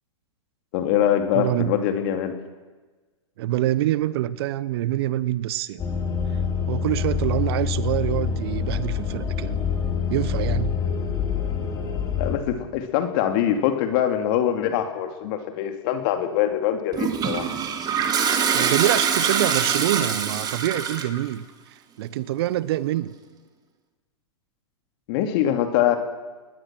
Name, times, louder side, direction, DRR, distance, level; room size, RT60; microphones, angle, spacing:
voice 1, 0.7-2.4 12.2-17.5 25.1-26.0, left 10 dB, 50° left, 6 dB, 2.6 m, -23 dB
voice 2, 1.3-1.8 3.4-5.9 6.7-9.6 10.1-10.8 18.5-23.1, right 14 dB, 55° right, 18 dB, 1.0 m, -25 dB
sound 1, 5.8-12.3, left 6 dB, 25° left, 4.0 m, -26 dB
Toilet flush, 16.9-21.2, right 7 dB, 25° right, 2.1 m, -24 dB
21.5 x 20.0 x 6.2 m, 1.3 s
hypercardioid pair, 110°, 15 cm